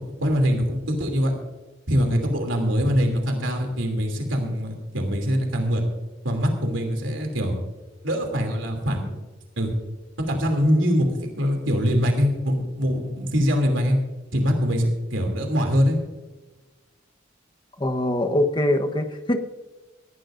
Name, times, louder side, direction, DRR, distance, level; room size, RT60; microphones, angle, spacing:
voice 1, 0.0-1.3 1.9-5.8 6.2-7.6 8.0-9.1 9.6-9.7 10.2-14.0 14.3-16.0, equal, 80° right, 3 dB, 2.8 m, -23 dB
voice 2, 17.8-19.4, left 1 dB, 25° left, 5 dB, 1.0 m, -23 dB
19.0 x 15.0 x 2.6 m, 1.2 s
head